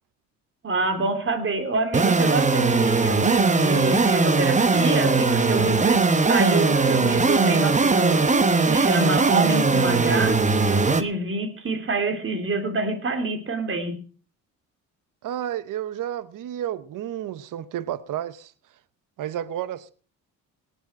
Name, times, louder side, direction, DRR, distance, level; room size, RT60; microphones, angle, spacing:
voice 1, 0.6-14.0, right 3 dB, 40° right, 3.1 m, -27 dB
sound 1, 1.9-11.0, right 4 dB, 20° right, 1.1 m, -20 dB
voice 2, 15.2-18.5 19.2-19.9, right 11 dB, 70° right, 0.9 m, -31 dB
18.5 x 8.1 x 6.2 m
cardioid pair, 105°, 33 cm